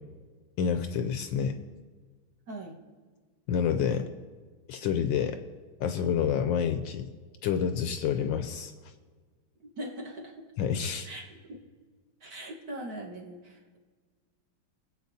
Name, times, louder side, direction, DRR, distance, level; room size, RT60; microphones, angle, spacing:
voice 1, 0.6-1.6 3.5-4.1 4.7-5.4 5.8-7.1 7.4-8.7 10.6-11.1, left 7 dB, 75° left, 8 dB, 1.2 m, -28 dB
voice 2, 9.8-10.5 11.0-11.6 12.2-13.8, right 1 dB, 50° right, -2 dB, 1.8 m, -41 dB
22.0 x 7.6 x 2.8 m, 1.4 s
omnidirectional pair, 2.3 m